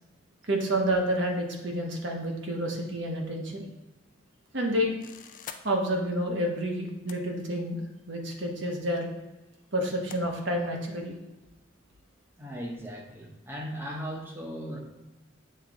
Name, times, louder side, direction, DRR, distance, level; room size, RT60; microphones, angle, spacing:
voice 1, 0.5-3.6 4.5-5.0 5.6-7.8 8.1-9.1 9.7-11.2, equal, 60° right, 1 dB, 1.1 m, -29 dB
sound 1, 5.0-5.6 6.9-7.2 8.3-8.4 10.1-10.2, left 8 dB, 40° left, 0.4 m, -43 dB
voice 2, 12.4-14.8, equal, 10° right, 0 dB, 0.8 m, -37 dB
7.9 x 3.6 x 3.8 m, 1.0 s
head